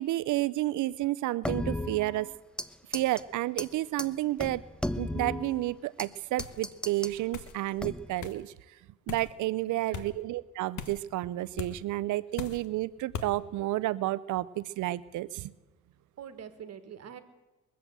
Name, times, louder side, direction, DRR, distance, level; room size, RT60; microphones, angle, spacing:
voice 1, 0.0-2.3 2.9-4.6 5.0-8.5 9.1-15.5, right 16 dB, 75° right, 19 dB, 0.5 m, -31 dB
sound 1, 1.4-2.7 2.9-3.2 3.6-3.7 4.0-4.1 4.4-6.1 6.4-7.2 7.8-8.2, left 1 dB, 5° left, 0.6 m, -35 dB
sound 2, 6.4-6.6 7.3-7.6 8.2-8.4 9.1-9.3 9.9-10.1 10.8-11.0 11.6-11.8 12.4-12.7 13.1-13.3, left 8 dB, 70° left, 1.3 m, -39 dB
voice 2, 9.7-10.1 16.2-17.2, right 8 dB, 55° right, 10 dB, 1.5 m, -45 dB
22.0 x 7.7 x 7.9 m, 1.1 s
cardioid pair, 90°, 30 cm